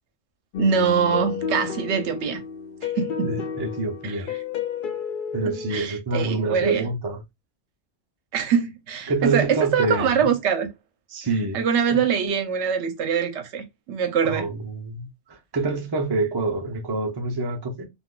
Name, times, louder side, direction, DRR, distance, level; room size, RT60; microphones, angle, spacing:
sound 1, 0.5-5.8, left 6 dB, 60° left, 0.6 m, -31 dB
voice 1, 0.6-2.4 2.8-3.5 4.0-4.2 5.5-6.8 8.3-10.7 11.5-14.5, right 7 dB, 75° right, 0.9 m, -24 dB
voice 2, 3.2-4.3 5.3-7.2 9.1-10.3 11.1-11.6 11.9-12.0 14.2-17.9, right 3 dB, 30° right, 0.4 m, -27 dB
2.5 x 2.3 x 3.7 m
omnidirectional pair, 1.2 m